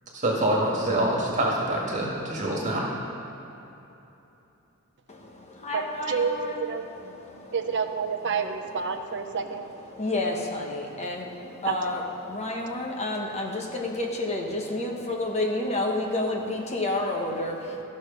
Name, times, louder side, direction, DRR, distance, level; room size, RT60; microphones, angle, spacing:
voice 1, 0.1-2.8, right 1 dB, 35° right, -4 dB, 1.9 m, -25 dB
voice 2, 5.1-7.7 8.3-8.4 8.9-17.8, left 2 dB, 30° left, 1 dB, 1.1 m, -31 dB
voice 3, 6.1-6.8 7.5-9.6 11.6-11.7, right 5 dB, 55° right, 6 dB, 0.7 m, -28 dB
13.5 x 6.4 x 5.4 m, 3.0 s
head